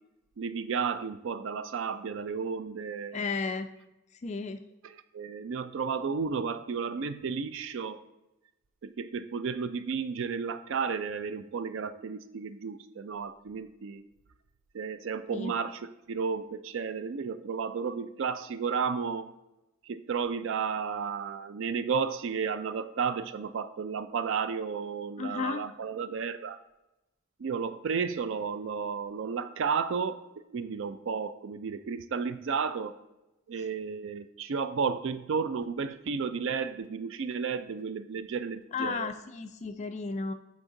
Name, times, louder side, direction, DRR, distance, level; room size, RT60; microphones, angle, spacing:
voice 1, 0.4-3.2 4.8-8.0 8.8-14.0 14.7-19.3 19.8-26.6 27.4-30.2 30.5-33.0 33.5-39.1, right 5 dB, 60° right, 12 dB, 0.4 m, -33 dB
voice 2, 3.1-3.7 4.2-4.6 15.3-15.5 25.2-25.6 38.7-40.3, left 4 dB, 30° left, 8 dB, 0.3 m, -33 dB
7.9 x 4.6 x 3.7 m, 0.95 s
head